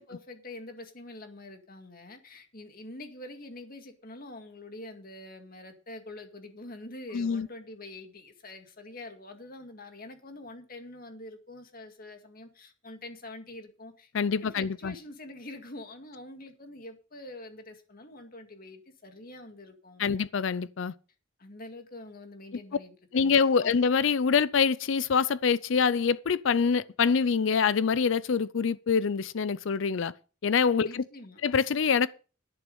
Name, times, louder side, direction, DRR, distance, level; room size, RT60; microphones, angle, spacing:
voice 1, 0.0-14.1 14.4-20.2 21.4-23.7 30.8-31.4, left 2 dB, 45° left, 2.1 m, -45 dB
voice 2, 7.1-7.5 14.1-14.9 20.0-20.9 23.1-30.1 30.4-31.0 31.4-32.1, left 6 dB, 65° left, 0.5 m, -25 dB
11.0 x 9.3 x 5.3 m
head